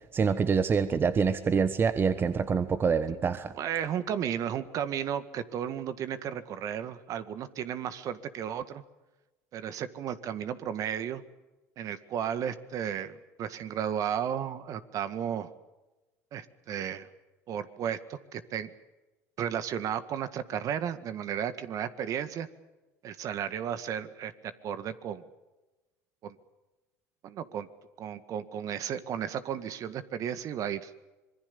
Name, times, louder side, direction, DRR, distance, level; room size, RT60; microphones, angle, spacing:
voice 1, 0.1-3.5, right 6 dB, 30° right, 12 dB, 1.3 m, -26 dB
voice 2, 3.1-8.8 9.5-11.2 11.8-15.5 16.3-17.1 17.5-18.7 19.4-22.5 23.0-25.2 26.2-26.4 27.2-27.7 28.0-30.9, right 9 dB, 50° right, 12 dB, 1.8 m, -34 dB
26.0 x 21.5 x 7.0 m, 1.1 s
supercardioid pair, 90°, 7 cm